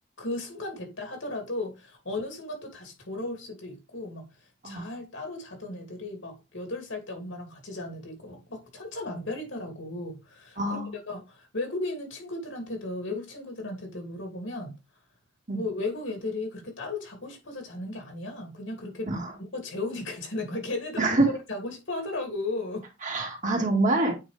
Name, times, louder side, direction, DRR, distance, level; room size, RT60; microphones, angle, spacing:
voice 1, 0.2-4.3 4.6-14.7 15.5-19.1 19.4-22.8, left 2 dB, 80° left, 2.7 m, -35 dB
voice 2, 10.6-10.9 15.5-15.6 19.1-19.2 21.0-21.3 23.0-24.1, right 2 dB, 40° right, 1.9 m, -25 dB
8.8 x 4.2 x 3.4 m
head